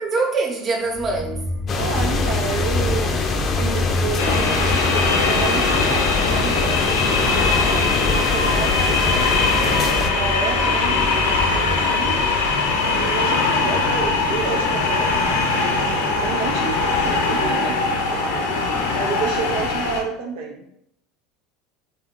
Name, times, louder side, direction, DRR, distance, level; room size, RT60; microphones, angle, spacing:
voice 1, 0.0-1.5 7.0-8.3, right 3 dB, 35° right, 0.8 m, -26 dB
sound 1, 0.9-18.0, left 1 dB, ahead, 0.6 m, -29 dB
sound 2, 1.7-10.1, left 5 dB, 40° left, 0.5 m, -25 dB
voice 2, 1.8-7.0 7.7-9.2 10.1-12.2 12.9-15.9 16.2-20.8, right 6 dB, 75° right, 0.5 m, -30 dB
sound 3, 4.2-20.0, left 3 dB, 90° left, 0.6 m, -21 dB
2.6 x 2.5 x 3.6 m
supercardioid pair, 95°, 0 cm